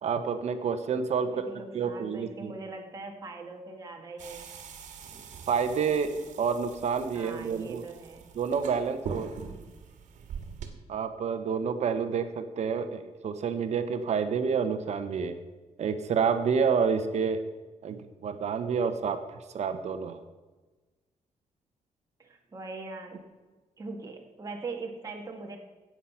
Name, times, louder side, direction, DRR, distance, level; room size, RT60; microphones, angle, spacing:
voice 1, 0.0-1.4 1.7-2.5 5.5-6.1 6.4-7.8 8.4-9.3 10.9-15.3 15.8-17.4 17.8-19.2 19.5-20.2, right 6 dB, 60° right, 9 dB, 1.1 m, -28 dB
voice 2, 1.2-4.5 7.1-8.2 22.2-23.2 23.8-25.6, right 3 dB, 30° right, 1 dB, 1.9 m, -41 dB
sound 1, 4.2-10.7, right 5 dB, 75° right, 1.8 m, -43 dB
16.5 x 7.6 x 5.8 m, 1.2 s
cardioid pair, 110°, 13 cm